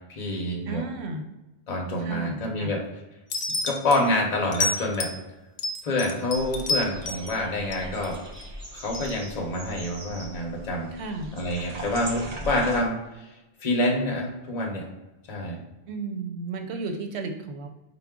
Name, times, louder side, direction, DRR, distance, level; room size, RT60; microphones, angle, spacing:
voice 1, 0.1-0.8 1.7-2.8 3.6-5.1 5.8-8.2 8.7-10.9 11.3-13.4 13.6-14.9 15.3-15.6, left 1 dB, 40° left, 0 dB, 0.8 m, -27 dB
voice 2, 0.7-1.2 2.0-2.7 10.9-11.3 15.9-17.7, right 3 dB, 85° right, 5 dB, 0.9 m, -33 dB
sound 1, 3.3-4.0 4.5-5.2 5.6-7.3 7.7-8.5 8.9-9.1, left 2 dB, 90° left, 0.9 m, -29 dB
sound 2, 6.3-12.8, right 1 dB, 45° right, 0.7 m, -40 dB
4.4 x 2.1 x 3.5 m, 1.0 s
omnidirectional pair, 1.1 m